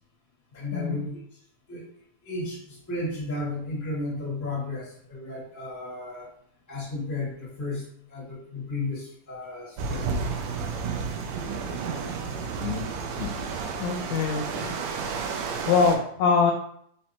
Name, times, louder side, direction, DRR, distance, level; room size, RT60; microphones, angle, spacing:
voice 1, 0.5-1.1 1.7-1.8 2.2-6.3 6.7-7.8 8.1-10.1, left 2 dB, 10° left, -7 dB, 0.9 m, -33 dB
sound 1, 9.8-16.0, right 5 dB, 80° right, 2.1 m, -31 dB
voice 2, 13.8-14.7 15.7-16.5, left 5 dB, 80° left, 1 dB, 1.6 m, -24 dB
5.7 x 2.1 x 4.2 m, 0.66 s
omnidirectional pair, 3.8 m